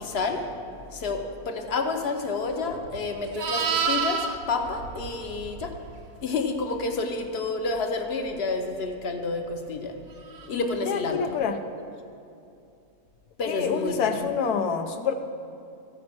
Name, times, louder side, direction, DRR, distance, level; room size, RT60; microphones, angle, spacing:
voice 1, 0.0-5.8 6.2-10.0 10.5-11.4 13.4-14.3, left 3 dB, 50° left, 5 dB, 0.9 m, -29 dB
Livestock farm animals working animals, 2.6-5.9 10.3-10.5, right 6 dB, 65° right, 1.2 m, -30 dB
voice 2, 10.9-11.5 13.5-15.1, left 6 dB, 80° left, 7 dB, 1.2 m, -27 dB
15.0 x 5.2 x 5.9 m, 2.6 s
omnidirectional pair, 1.6 m